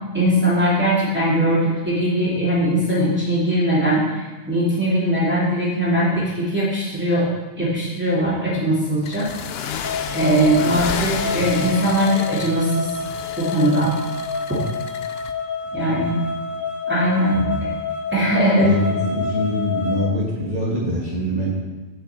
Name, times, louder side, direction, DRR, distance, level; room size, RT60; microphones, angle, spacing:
voice 1, 0.1-7.3 7.6-9.3 10.1-12.9 13.4-14.0 15.7-16.2 16.9-17.7 18.1-18.7 19.0-19.1, equal, 10° right, -9 dB, 2.5 m, -20 dB
sound 1, 9.0-15.3, left 8 dB, 65° left, 0.7 m, -31 dB
sound 2, 9.8-20.1, left 3 dB, 15° left, 0.8 m, -28 dB
voice 2, 15.7-16.2 17.3-17.6 18.6-21.5, left 1 dB, 35° right, -6 dB, 1.7 m, -24 dB
7.1 x 5.9 x 7.5 m, 1.2 s
omnidirectional pair, 1.3 m